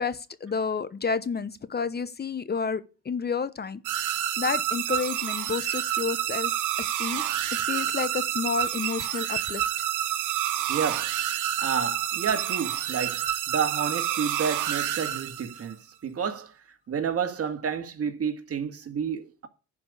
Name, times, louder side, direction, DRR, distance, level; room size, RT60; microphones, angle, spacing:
voice 1, 0.0-3.8 4.4-6.5 6.8-7.2 7.5-9.7, left 5 dB, 35° left, 0.9 m, -30 dB
sound 1, 3.8-15.7, right 11 dB, 90° right, 1.3 m, -28 dB
voice 2, 10.7-11.1 11.6-15.8 16.0-16.6 16.9-19.5, right 6 dB, 50° right, 1.9 m, -30 dB
10.5 x 5.2 x 8.4 m
cardioid pair, 90°, 30 cm